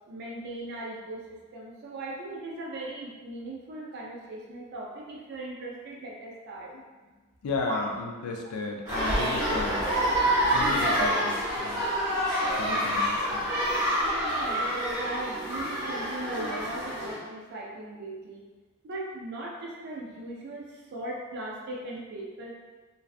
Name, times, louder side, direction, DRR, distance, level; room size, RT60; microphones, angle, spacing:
voice 1, 0.1-1.2 1.5-6.7 7.7-7.8 14.2-18.4 18.8-22.5, right 2 dB, 50° right, -3 dB, 0.3 m, -38 dB
voice 2, 7.4-10.2 10.5-11.9 12.6-13.5, left 3 dB, 85° left, 2 dB, 0.4 m, -35 dB
sound 1, 8.9-17.2, equal, 10° right, 0.7 m, -27 dB
2.5 x 2.2 x 2.4 m, 1.3 s
head